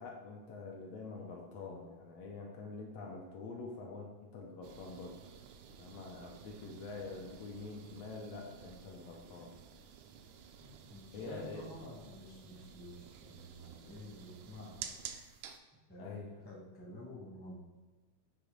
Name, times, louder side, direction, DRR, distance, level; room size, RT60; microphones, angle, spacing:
voice 1, 0.0-5.1 5.8-9.5 11.1-11.7 16.0-16.3, left 3 dB, 70° left, -1 dB, 1.8 m, -46 dB
sound 1, 4.6-15.6, right 8 dB, 80° right, 1.8 m, -52 dB
voice 2, 10.6-14.7 15.9-17.6, left 1 dB, 5° left, -5 dB, 0.8 m, -50 dB
8.2 x 3.0 x 5.2 m, 1.2 s
omnidirectional pair, 3.5 m